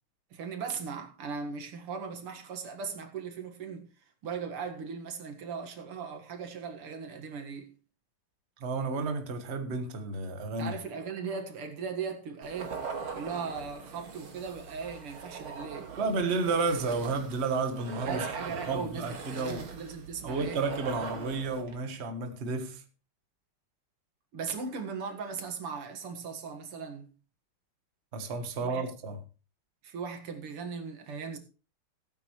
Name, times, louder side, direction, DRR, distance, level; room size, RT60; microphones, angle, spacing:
voice 1, 0.3-3.9 4.2-7.7 10.6-12.8 13.1-15.9 18.1-20.6 20.9-21.3 24.3-27.1 28.6-28.8 29.8-31.4, right 5 dB, 90° right, 2.6 m, -38 dB
voice 2, 8.6-10.7 16.0-18.3 18.7-19.7 20.2-22.8 28.1-29.2, right 3 dB, 35° right, 1.4 m, -31 dB
sound 1, 12.4-21.7, right 5 dB, 70° right, 2.7 m, -41 dB
17.0 x 9.0 x 3.2 m
omnidirectional pair, 2.4 m